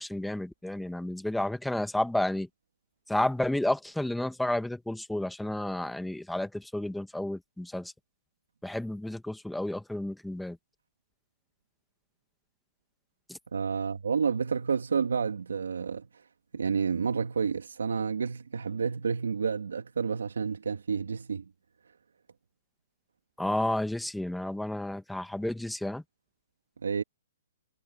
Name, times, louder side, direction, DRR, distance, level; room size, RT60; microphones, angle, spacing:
voice 1, 0.0-2.5 3.1-7.9 8.6-10.6 13.3-13.4 23.4-26.0, left 1 dB, ahead, 1.5 m, -31 dB
voice 2, 13.5-16.1 16.5-21.5 26.8-27.0, right 6 dB, 85° right, 2.6 m, -30 dB
hypercardioid pair, 145°, 0 cm